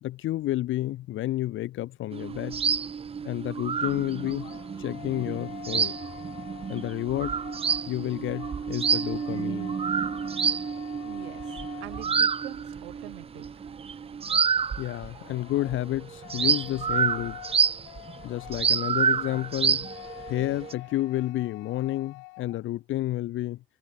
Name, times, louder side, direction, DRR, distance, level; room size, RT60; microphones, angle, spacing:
voice 1, 0.0-2.6 3.2-4.5 4.8-5.9 6.7-7.4 7.9-9.7 14.8-17.4 18.2-19.9 20.3-23.6, left 15 dB, 40° left, 0.4 m, -30 dB
sound 1, 2.1-15.3 15.6-20.7, right 6 dB, 20° right, 0.5 m, -29 dB
sound 2, 4.2-12.6 14.9-22.7, left 31 dB, 70° left, 1.7 m, -47 dB
voice 2, 11.0-13.5, right 22 dB, 80° right, 2.5 m, -44 dB
sound 3, 11.2-21.3, right 7 dB, 35° right, 6.0 m, -61 dB
hypercardioid pair, 70°, 31 cm